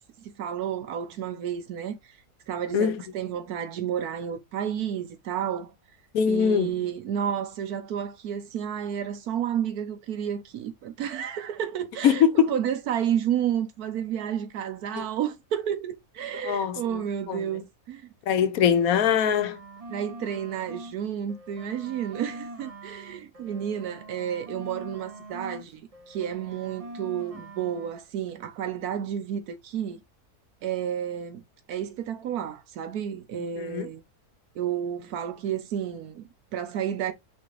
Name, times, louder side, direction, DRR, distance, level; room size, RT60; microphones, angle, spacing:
voice 1, 0.0-2.0 2.5-5.7 6.3-18.1 19.9-30.0 30.6-34.0 34.5-37.1, right 9 dB, 80° right, 1.3 m, -31 dB
voice 2, 6.1-6.7 12.0-12.5 15.0-15.1 16.4-17.4 18.3-19.6 33.6-33.9, left 8 dB, 75° left, 1.0 m, -23 dB
sound 1, 18.7-21.0 21.3-25.7 25.9-27.9, right 2 dB, 35° right, 0.6 m, -43 dB
4.2 x 3.6 x 3.1 m
omnidirectional pair, 1.6 m